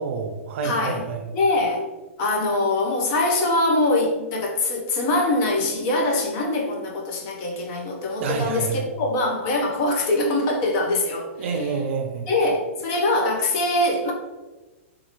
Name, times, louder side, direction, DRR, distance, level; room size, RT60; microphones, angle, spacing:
voice 1, 0.0-1.2 8.2-8.9 11.4-12.3, right 5 dB, 60° right, 5 dB, 0.4 m, -28 dB
voice 2, 0.6-1.0 1.3-1.9 2.2-11.5 12.3-14.1, left 2 dB, 35° left, 0 dB, 0.6 m, -23 dB
2.7 x 2.5 x 2.8 m, 1.2 s
hypercardioid pair, 140°, 7 cm